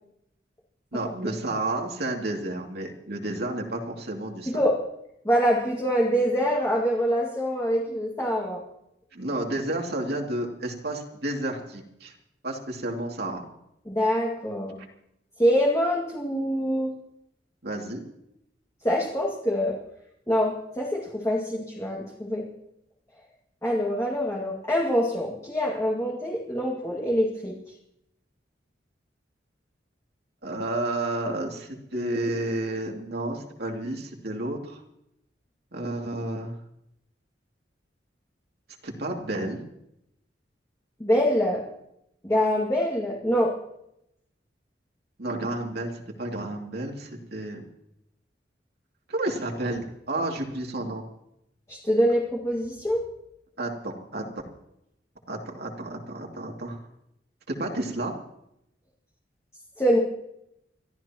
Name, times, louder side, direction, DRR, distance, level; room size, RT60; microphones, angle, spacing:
voice 1, 0.9-4.5 9.1-12.1 12.4-13.4 17.6-18.0 30.4-34.8 35.7-36.6 38.8-39.6 45.2-47.6 49.1-51.1 53.6-54.2 55.3-56.8 57.5-58.1, right 1 dB, 60° right, 1 dB, 2.6 m, -31 dB
voice 2, 4.5-4.8 5.2-8.6 13.9-14.8 15.4-16.9 18.8-19.8 20.3-22.5 23.6-27.6 41.0-41.6 42.2-43.5 51.7-53.0 59.8-60.0, equal, 15° left, -3 dB, 2.0 m, -25 dB
29.5 x 13.0 x 3.0 m, 0.80 s
head